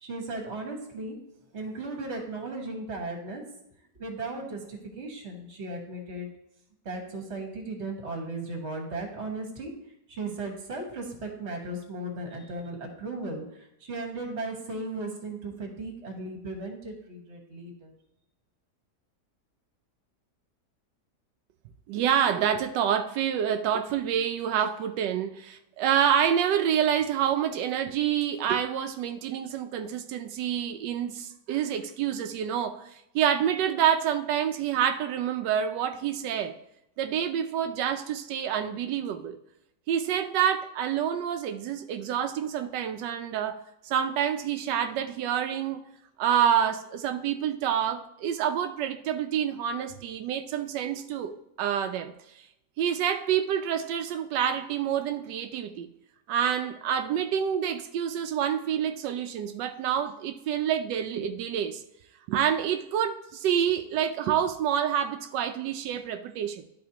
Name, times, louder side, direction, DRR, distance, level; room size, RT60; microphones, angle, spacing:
voice 1, 0.0-1.2 1.5-3.4 3.9-6.3 6.8-9.7 10.1-17.9, right 2 dB, 40° right, 2 dB, 1.5 m, -36 dB
voice 2, 21.9-36.5 37.0-39.4 39.9-43.6 43.8-45.8 46.2-52.1 52.8-55.9 56.3-61.8 62.3-66.7, right 9 dB, 90° right, 7 dB, 1.2 m, -27 dB
11.5 x 4.1 x 2.9 m, 0.80 s
omnidirectional pair, 1.8 m